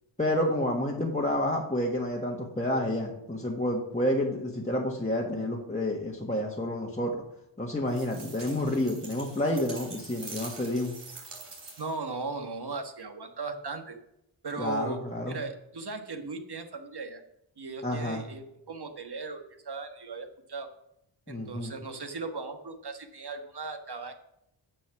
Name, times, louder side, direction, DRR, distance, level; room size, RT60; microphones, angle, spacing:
voice 1, 0.2-7.2 7.6-10.9 14.6-15.4 17.8-18.2 21.3-21.7, left 1 dB, 15° left, -3 dB, 1.6 m, -29 dB
sound 1, 7.9-12.1, right 3 dB, 85° right, 3.7 m, -45 dB
voice 2, 11.8-14.0 14.4-17.2 17.6-20.7 21.3-24.1, right 3 dB, 50° right, 6 dB, 1.5 m, -37 dB
9.6 x 6.2 x 5.9 m, 0.82 s
wide cardioid pair, 75°, 49 cm